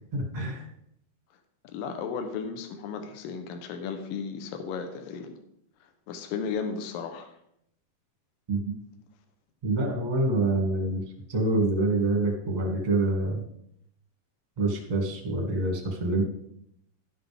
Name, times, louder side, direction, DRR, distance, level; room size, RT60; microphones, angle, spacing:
voice 1, 0.1-0.6 8.5-8.7 9.6-11.0 11.3-13.4 14.6-16.2, right 2 dB, 25° right, 0 dB, 1.0 m, -26 dB
voice 2, 1.6-5.4 5.8-7.3, left 6 dB, 75° left, 5 dB, 2.4 m, -35 dB
12.0 x 7.9 x 3.5 m, 0.75 s
omnidirectional pair, 4.2 m